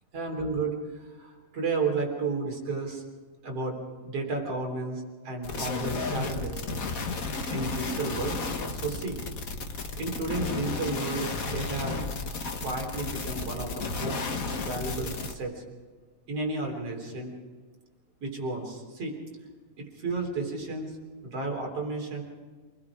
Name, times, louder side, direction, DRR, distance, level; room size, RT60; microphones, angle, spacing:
voice 1, 0.1-3.0 3.4-6.6 7.4-8.4 8.7-9.2 10.0-12.0 12.6-14.2 14.6-15.6 16.3-17.3 18.2-19.2 19.8-21.0 21.2-22.2, right 3 dB, 50° right, 0 dB, 4.6 m, -32 dB
sound 1, 5.4-15.3, left 3 dB, 45° left, 1.2 m, -33 dB
28.5 x 20.0 x 5.0 m, 1.4 s
omnidirectional pair, 3.4 m